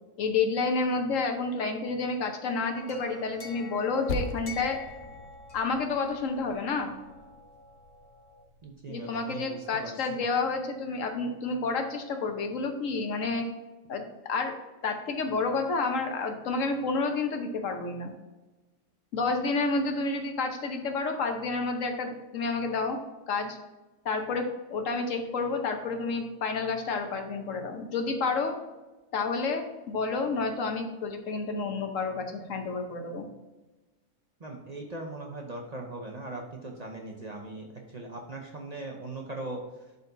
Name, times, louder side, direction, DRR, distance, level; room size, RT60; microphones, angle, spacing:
voice 1, 0.2-4.8 5.5-6.9 8.9-13.4 13.9-14.5 14.8-18.1 19.1-23.0 23.3-23.6 24.0-28.6 29.1-33.3, left 4 dB, 70° left, 5 dB, 1.2 m, -30 dB
sound 1, 2.7-8.4, left 4 dB, 50° left, 1.1 m, -47 dB
Percussion, 4.1-8.9, left 2 dB, 90° left, 1.1 m, -40 dB
voice 2, 8.6-10.2 34.4-39.6, right 2 dB, 35° right, 0 dB, 0.8 m, -40 dB
11.0 x 4.1 x 2.7 m, 1.1 s
omnidirectional pair, 1.4 m